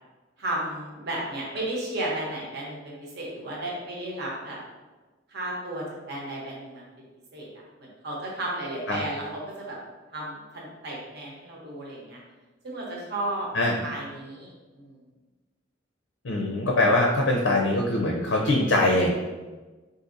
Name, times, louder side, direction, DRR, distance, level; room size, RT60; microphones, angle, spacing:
voice 1, 0.4-4.6 5.3-6.8 7.3-7.5 7.8-9.8 10.1-12.2 12.6-13.5 13.8-15.0, right 1 dB, 60° right, -3 dB, 0.9 m, -33 dB
voice 2, 16.2-19.1, left 2 dB, 75° left, -1 dB, 0.5 m, -22 dB
4.0 x 2.7 x 2.5 m, 1.2 s
head